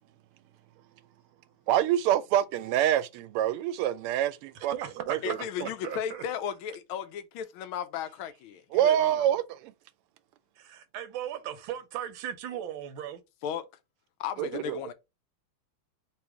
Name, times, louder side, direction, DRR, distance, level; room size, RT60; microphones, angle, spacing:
voice 1, 1.7-4.8 5.1-5.7 8.7-9.7 14.4-14.8, right 11 dB, 90° right, 1.5 m, -26 dB
voice 2, 4.7-5.4 5.8-6.2 10.6-13.2, right 9 dB, 70° right, 1.3 m, -37 dB
voice 3, 5.2-9.3 13.4-13.6 14.2-14.9, left 8 dB, 75° left, 1.3 m, -35 dB
3.4 x 3.0 x 4.5 m
omnidirectional pair, 2.4 m